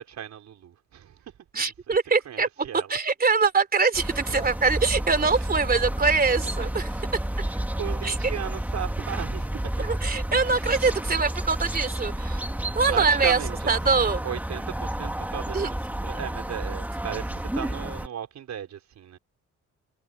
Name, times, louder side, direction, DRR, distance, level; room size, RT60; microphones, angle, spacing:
voice 1, 0.0-2.0 2.2-2.9 4.3-4.6 5.5-5.7 7.4-9.8 10.6-10.7 12.9-15.8 16.0-19.2, right 9 dB, 65° right, 4.9 m, -36 dB
voice 2, 1.5-2.5 2.9-6.9 8.0-8.1 9.9-12.5 12.7-13.4 13.7-14.2 15.5-15.7, right 4 dB, 30° right, 3.1 m, -23 dB
sound 1, 3.9-18.1, right 1 dB, 5° right, 2.0 m, -30 dB
cardioid pair, 90°, 30 cm